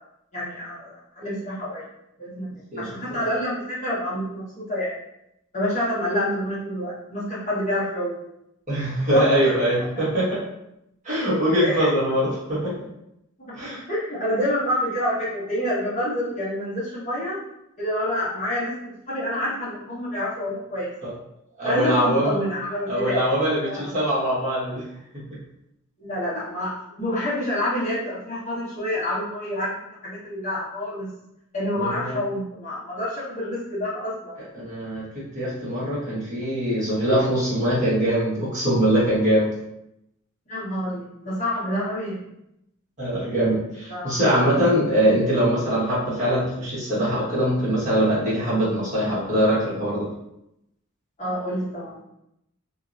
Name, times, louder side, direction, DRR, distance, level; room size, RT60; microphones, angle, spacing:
voice 1, 0.3-1.8 2.2-2.5 2.8-4.9 5.5-8.2 9.1-9.6 11.6-11.9 13.4-17.4 17.8-20.9 21.6-23.2 23.6-24.0 26.0-29.7 30.0-31.1 31.5-34.4 40.5-42.2 43.9-44.2 51.2-52.0, left 1 dB, 35° left, -10 dB, 1.3 m, -28 dB
voice 2, 8.7-10.4 11.0-12.7 13.5-13.8 21.0-21.1 21.6-22.4 22.9-24.8 25.1-25.2 31.7-32.2 34.5-35.0 35.3-39.5 43.0-50.1, equal, 35° right, -9 dB, 1.2 m, -22 dB
2.9 x 2.7 x 2.5 m, 0.81 s
head